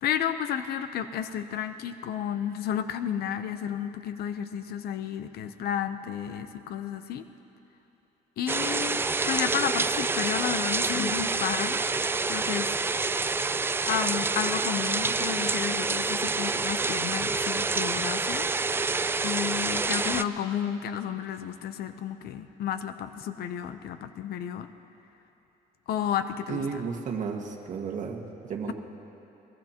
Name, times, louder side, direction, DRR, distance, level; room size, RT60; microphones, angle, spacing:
voice 1, 0.0-7.2 8.4-11.8 12.3-12.8 13.8-18.5 19.2-24.7 25.9-26.8, left 9 dB, 65° left, 10 dB, 0.7 m, -32 dB
sound 1, 8.5-20.2, right 4 dB, 15° right, 0.3 m, -27 dB
sound 2, 16.8-18.7 19.2-21.2, left 2 dB, 40° left, 3.1 m, -54 dB
voice 2, 26.5-28.7, right 5 dB, 45° right, 1 dB, 1.7 m, -33 dB
22.0 x 21.5 x 2.9 m, 3.0 s
cardioid pair, 110°, 17 cm